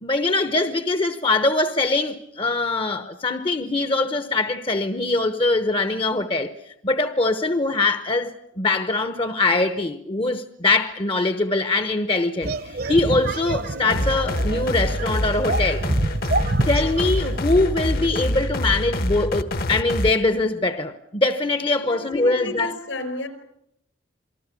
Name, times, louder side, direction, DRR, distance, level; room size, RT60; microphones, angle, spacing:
voice 1, 0.0-15.8 16.7-22.7, left 2 dB, 25° left, 0.9 m, -22 dB
sound 1, 12.4-17.4, right 2 dB, 50° right, 1.1 m, -28 dB
sound 2, 13.9-20.1, left 1 dB, 50° left, 1.3 m, -25 dB
voice 2, 21.9-23.3, left 2 dB, 70° left, 5.0 m, -31 dB
27.5 x 19.5 x 8.4 m
head